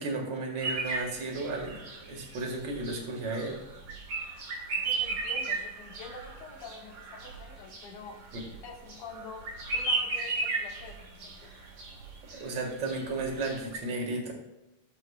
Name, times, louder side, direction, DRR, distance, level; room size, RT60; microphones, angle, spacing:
voice 1, 0.0-1.8 2.1-3.6 12.3-14.3, right 3 dB, 40° right, 1 dB, 2.3 m, -33 dB
sound 1, 0.6-13.8, right 3 dB, 55° right, 2.9 m, -35 dB
voice 2, 4.7-8.2 8.6-11.5, left 3 dB, 80° left, 0 dB, 3.2 m, -46 dB
16.5 x 7.4 x 2.4 m, 1.0 s
omnidirectional pair, 3.6 m